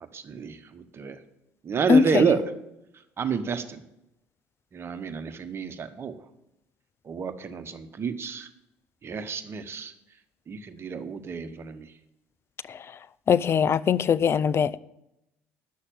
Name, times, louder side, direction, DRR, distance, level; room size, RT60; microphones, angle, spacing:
voice 1, 0.1-1.2 1.6-2.4 3.2-3.8 4.7-6.1 7.0-8.5 9.0-9.9 10.5-11.9, right 6 dB, 40° right, 1.4 m, -29 dB
voice 2, 1.9-2.3 12.7-12.8 13.3-14.8, left 6 dB, 40° left, 0.5 m, -21 dB
10.5 x 6.5 x 9.1 m
hypercardioid pair, 65°, 6 cm